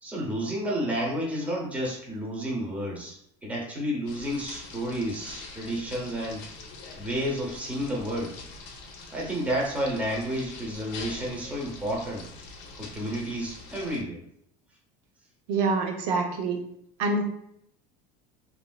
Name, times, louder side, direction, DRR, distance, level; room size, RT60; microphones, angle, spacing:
voice 1, 0.0-6.5 7.0-8.4 9.1-12.3 12.8-14.2, equal, 5° right, -2 dB, 0.8 m, -31 dB
sound 1, 4.1-14.0, left 3 dB, 60° left, 0.6 m, -44 dB
voice 2, 15.5-16.6 17.0-17.2, right 3 dB, 85° right, 2 dB, 0.7 m, -26 dB
3.0 x 2.6 x 2.2 m, 0.72 s
supercardioid pair, 140°, 20 cm